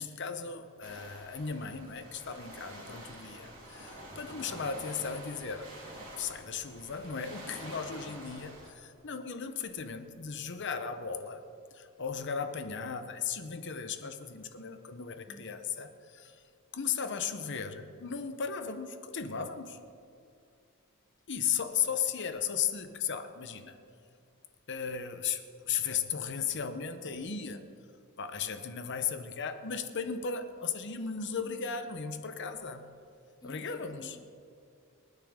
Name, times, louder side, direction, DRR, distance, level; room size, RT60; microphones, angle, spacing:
voice 1, 0.0-5.7 6.2-11.5 11.7-16.4 16.7-19.8 21.3-23.8 24.7-27.6 28.2-32.9 33.4-34.2, left 6 dB, 55° left, 9 dB, 0.9 m, -36 dB
sound 1, 0.8-8.7, right 1 dB, 65° right, 4.0 m, -47 dB
voice 2, 2.7-3.0 15.3-15.6 27.4-27.7 33.4-34.3, left 1 dB, 20° left, 6 dB, 0.6 m, -52 dB
24.0 x 9.2 x 3.7 m, 2.4 s
head